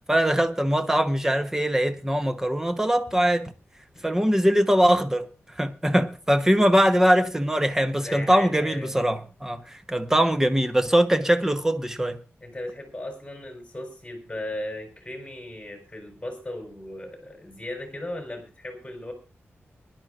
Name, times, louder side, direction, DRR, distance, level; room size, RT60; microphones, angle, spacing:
voice 1, 0.1-3.5 4.0-5.3 5.6-12.2, equal, 10° right, 1.0 m, -22 dB
voice 2, 8.0-9.0 12.4-19.1, left 1 dB, 15° left, 4.2 m, -36 dB
24.0 x 11.0 x 2.5 m
wide cardioid pair, 125°, 5 cm